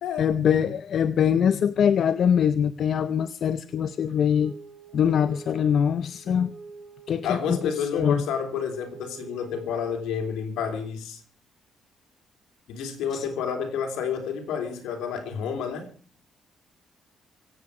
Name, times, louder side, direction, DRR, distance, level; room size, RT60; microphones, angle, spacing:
voice 1, 0.2-4.5 4.9-6.5 7.1-8.2 13.1-13.3, left 8 dB, 60° left, 0.7 m, -23 dB
Wind instrument woodwind instrument, 3.8-10.6, right 5 dB, 60° right, 5.4 m, -47 dB
voice 2, 7.2-11.2 12.7-15.9, left 7 dB, 85° left, 3.4 m, -30 dB
24.5 x 8.6 x 4.9 m
cardioid pair, 90°, 0 cm